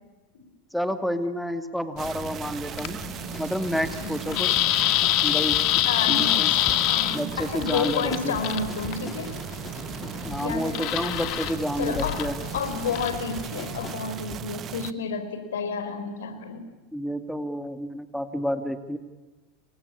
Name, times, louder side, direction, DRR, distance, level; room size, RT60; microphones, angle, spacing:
voice 1, 0.7-3.0 3.4-4.5 5.2-5.6 6.1-6.5 7.1-8.4 10.3-12.4 16.9-19.0, equal, ahead, 9 dB, 2.4 m, -29 dB
sound 1, 2.0-13.9, left 15 dB, 55° left, 2.2 m, -27 dB
sound 2, 2.0-14.9, right 10 dB, 40° right, 1.3 m, -37 dB
sound 3, 2.8-14.5 14.8-14.9, left 3 dB, 20° left, 3.6 m, -43 dB
voice 2, 4.0-4.4 5.9-9.3 10.4-10.9 11.8-12.2 12.5-16.6, left 5 dB, 80° left, 10 dB, 4.6 m, -31 dB
28.5 x 24.0 x 8.6 m, 1.2 s
hypercardioid pair, 95°, 0 cm